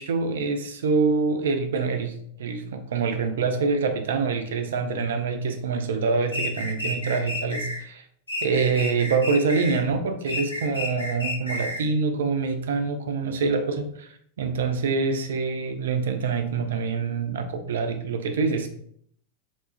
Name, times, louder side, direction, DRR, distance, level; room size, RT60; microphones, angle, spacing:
voice 1, 0.0-8.0 8.4-18.7, right 4 dB, 60° right, 8 dB, 0.4 m, -25 dB
sound 1, 6.3-7.8 8.3-9.8 10.3-11.9, left 2 dB, 80° left, 0.9 m, -31 dB
3.5 x 2.3 x 2.4 m, 0.65 s
figure-of-eight pair, 90°, 0 cm